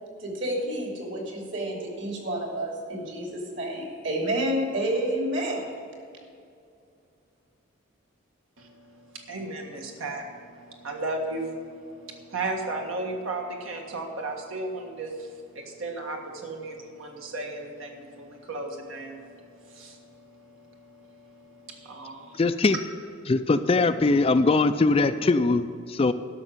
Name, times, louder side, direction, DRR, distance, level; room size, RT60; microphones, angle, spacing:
voice 1, 0.2-5.7, right 1 dB, 60° right, -1 dB, 2.9 m, -29 dB
voice 2, 8.6-22.4, right 2 dB, 80° right, 1 dB, 1.6 m, -36 dB
voice 3, 22.4-22.8 23.3-26.1, left 3 dB, 25° left, 11 dB, 0.3 m, -21 dB
12.0 x 6.4 x 7.5 m, 2.4 s
head